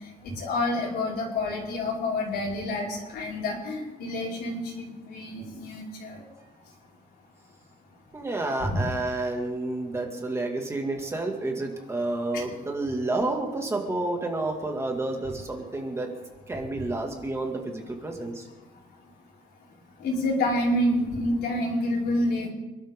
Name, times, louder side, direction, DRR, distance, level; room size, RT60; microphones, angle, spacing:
voice 1, 0.2-6.2 8.6-8.8 12.3-12.4 20.0-22.5, left 1 dB, 85° left, -3 dB, 5.2 m, -28 dB
voice 2, 8.1-16.1 16.5-18.4, right 2 dB, 15° right, 1 dB, 2.1 m, -30 dB
27.0 x 12.0 x 3.7 m, 1.0 s
cardioid pair, 170°, 16 cm